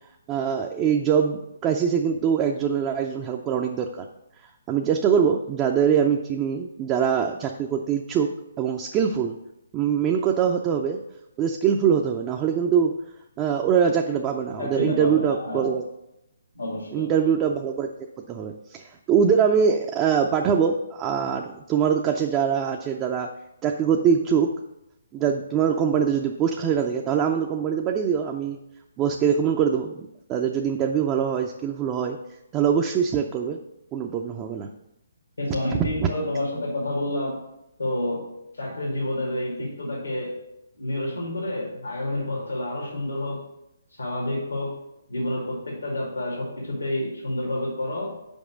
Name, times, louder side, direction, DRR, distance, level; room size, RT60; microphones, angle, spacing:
voice 1, 0.3-4.0 4.7-8.3 8.6-9.3 9.7-11.0 11.4-12.9 13.4-15.8 16.9-17.9 18.3-23.3 23.6-24.5 25.1-28.6 29.0-32.2 32.5-33.6 33.9-34.7, right 7 dB, 20° right, 2 dB, 0.4 m, -23 dB
voice 2, 14.6-15.7 16.6-17.2 35.4-37.4 37.8-38.2 38.6-40.4 40.7-43.4 44.0-44.7 45.1-48.1, left 1 dB, 90° left, -3 dB, 2.3 m, -29 dB
5.3 x 4.9 x 6.2 m, 0.86 s
hypercardioid pair, 145°, 0 cm